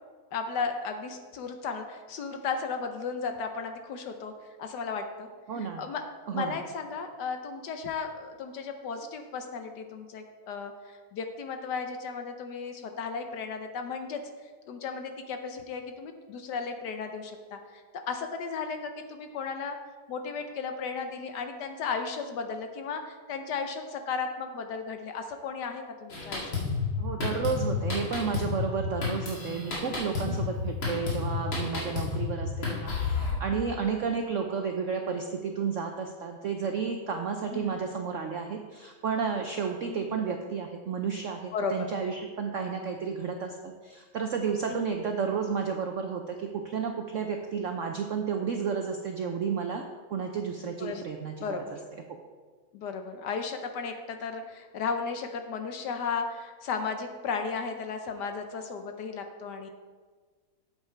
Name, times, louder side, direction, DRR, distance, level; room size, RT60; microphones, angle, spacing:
voice 1, 0.3-4.3 4.6-5.3 5.6-6.0 6.3-14.2 14.7-17.8 18.1-19.8 20.1-26.5 30.2-30.5 33.5-33.7 37.5-37.7 39.9-40.2 41.5-41.9 44.7-44.9 50.8-51.0 51.4-51.7 52.7-59.7, left 5 dB, 70° left, 6 dB, 1.2 m, -35 dB
voice 2, 5.5-5.8 6.3-6.6 27.0-49.8 50.1-51.3, right 6 dB, 75° right, 4 dB, 0.7 m, -32 dB
Drum kit, 26.1-33.3, left 4 dB, 85° left, 3.0 m, -31 dB
8.2 x 8.1 x 4.5 m, 1.5 s
omnidirectional pair, 2.1 m